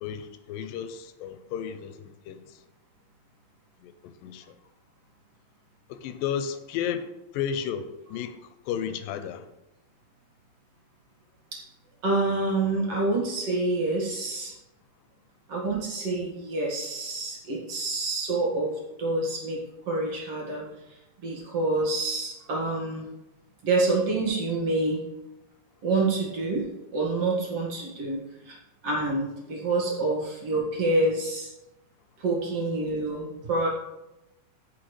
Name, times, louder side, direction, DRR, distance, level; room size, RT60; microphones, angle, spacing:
voice 1, 0.0-2.6 3.8-4.6 5.9-9.5, left 8 dB, 85° left, 2.3 m, -33 dB
voice 2, 12.0-14.5 15.5-20.7 21.2-23.1 23.6-25.0 25.8-28.6 28.8-31.5 32.2-33.7, right 2 dB, 50° right, 2.5 m, -27 dB
15.0 x 6.2 x 3.2 m
omnidirectional pair, 4.0 m